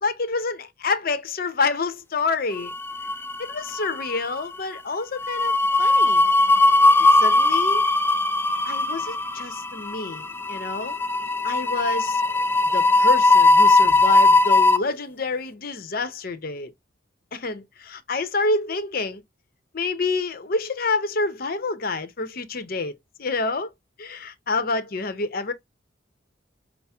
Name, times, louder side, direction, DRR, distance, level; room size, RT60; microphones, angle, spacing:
voice 1, 0.0-2.7 3.4-6.3 7.2-7.9 8.7-11.0 11.4-12.2 12.7-16.7 17.3-19.2 19.7-23.7 24.0-25.5, left 3 dB, 50° left, 0.7 m, -28 dB
sound 1, 2.7-3.5 3.8-4.0 5.2-14.8, left 2 dB, 10° left, 0.3 m, -18 dB
5.7 x 2.0 x 3.4 m
head